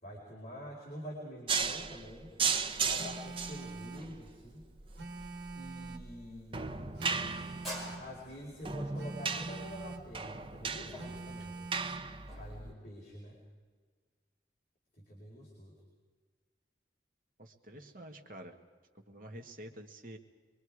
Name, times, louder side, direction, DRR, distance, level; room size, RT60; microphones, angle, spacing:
voice 1, 0.0-2.3 2.8-4.6 5.5-7.0 8.0-11.5 12.4-13.4 15.1-15.8, equal, 40° left, -4 dB, 4.4 m, -47 dB
sound 1, 1.5-12.7, right 5 dB, 30° right, 0.8 m, -37 dB
Telephone, 3.0-4.1 5.0-6.1 7.0-8.1 9.0-10.1 11.0-12.1, right 3 dB, 70° right, 2.3 m, -44 dB
sound 2, 7.6-12.6, equal, ahead, 5.6 m, -47 dB
voice 2, 17.4-18.6 19.1-20.2, right 1 dB, 50° right, 4 dB, 1.7 m, -48 dB
24.5 x 23.5 x 4.8 m, 1.5 s
head